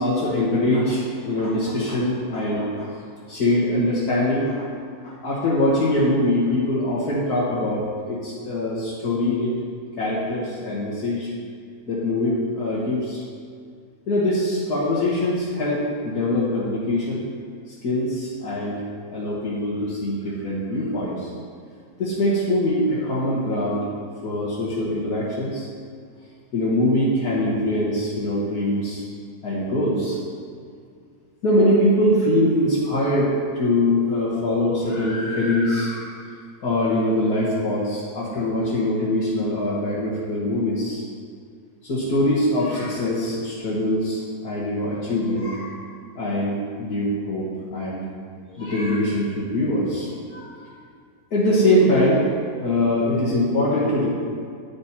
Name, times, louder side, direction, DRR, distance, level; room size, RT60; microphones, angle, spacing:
voice 1, 0.0-2.9 3.3-4.7 5.0-9.5 10.0-11.3 11.9-13.2 14.1-17.2 17.7-18.8 19.1-21.3 22.0-23.8 24.2-25.7 26.5-29.0 29.4-30.2 31.4-36.2 36.6-41.0 41.9-45.8 46.2-48.0 48.5-50.6 51.3-52.2 52.6-54.1, left 1 dB, 75° left, -9 dB, 2.0 m, -23 dB
10.5 x 9.8 x 2.9 m, 2.2 s
omnidirectional pair, 1.6 m